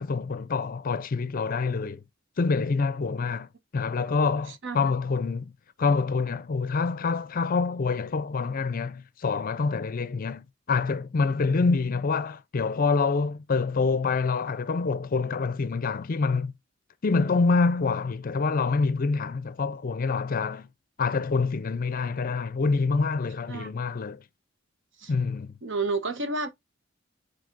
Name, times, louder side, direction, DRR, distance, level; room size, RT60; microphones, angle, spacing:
voice 1, 0.0-2.0 2.4-5.5 5.8-16.6 17.0-20.7 21.0-24.2 25.1-25.6, left 4 dB, 45° left, 0.5 m, -26 dB
voice 2, 25.6-26.5, right 3 dB, 65° right, 1.0 m, -30 dB
9.2 x 4.0 x 2.5 m
head